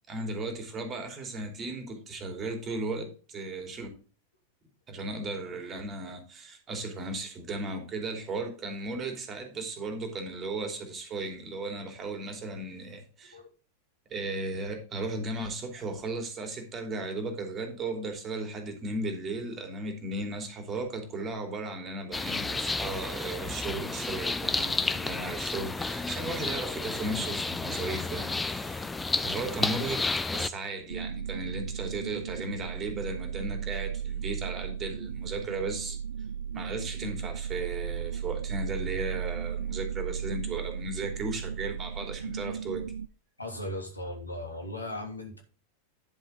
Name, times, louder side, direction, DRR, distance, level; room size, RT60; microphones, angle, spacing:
voice 1, 0.1-3.9 4.9-13.4 14.1-28.9 29.2-36.0 36.5-42.8, right 2 dB, 25° right, 5 dB, 3.1 m, -36 dB
sound 1, 22.1-30.5, left 3 dB, 10° left, 0.7 m, -31 dB
sound 2, 30.9-43.1, right 8 dB, 70° right, 0.4 m, -36 dB
voice 2, 43.4-45.4, left 1 dB, 85° left, 2 dB, 3.1 m, -37 dB
11.0 x 7.4 x 3.8 m, 0.36 s
figure-of-eight pair, 90°, 0 cm